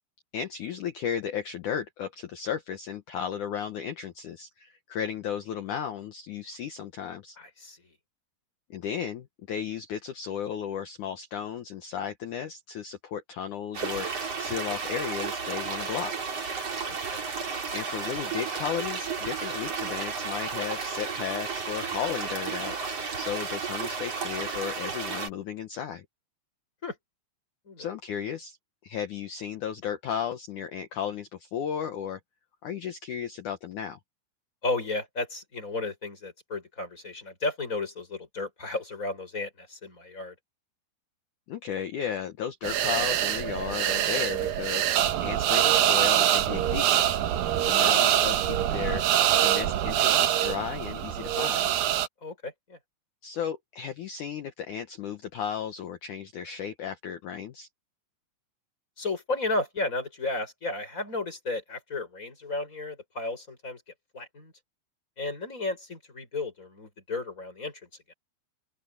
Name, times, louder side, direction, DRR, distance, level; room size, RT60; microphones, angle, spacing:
voice 1, 0.3-7.4 8.7-16.1 17.7-26.1 27.8-28.6 28.8-32.2 32.6-34.0 41.5-47.1 47.6-49.0 49.4-51.7 53.2-57.7, left 8 dB, 80° left, 1.7 m, -34 dB
voice 2, 7.4-7.9 16.8-17.3 26.8-27.0 27.7-27.9 34.6-40.3 52.2-52.8 59.0-63.8 64.1-64.5 65.2-67.9, left 2 dB, 15° left, 6.6 m, -33 dB
sound 1, 13.7-25.3, right 5 dB, 35° right, 4.5 m, -33 dB
sound 2, 42.6-52.1, right 11 dB, 70° right, 2.4 m, -24 dB
open air
omnidirectional pair, 5.2 m